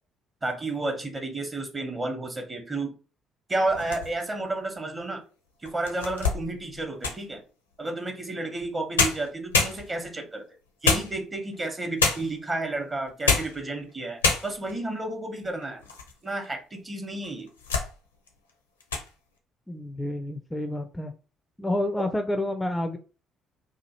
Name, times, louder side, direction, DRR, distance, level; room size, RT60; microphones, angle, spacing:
voice 1, 0.4-2.9 3.5-5.2 5.6-7.4 7.8-10.4 10.8-15.8 16.2-17.5, right 2 dB, 25° right, 4 dB, 0.9 m, -31 dB
sound 1, 3.7-4.4 5.0-5.1 5.6-7.3 8.6-8.7 9.0-10.2 10.8-11.5 12.0-12.5 13.1-13.6 13.9-14.0 14.2-14.8 15.3-16.1 16.4-16.5 17.2-17.9 18.3-18.5 18.8-19.1, left 4 dB, 80° left, 0.5 m, -27 dB
voice 2, 19.7-21.1 21.6-23.0, left 1 dB, 10° left, 5 dB, 0.4 m, -29 dB
2.9 x 2.3 x 2.9 m, 0.35 s
figure-of-eight pair, 45°, 0 cm